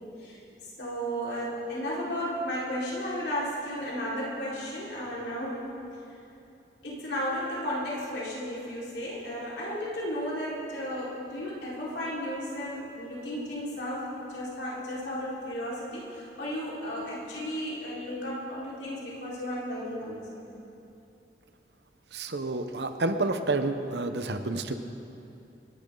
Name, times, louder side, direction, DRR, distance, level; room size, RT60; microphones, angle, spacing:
voice 1, 0.8-5.6 6.8-20.4, equal, 75° left, -7 dB, 4.7 m, -34 dB
voice 2, 22.1-24.7, right 2 dB, 70° right, 8 dB, 1.0 m, -29 dB
27.0 x 11.5 x 3.9 m, 2.8 s
head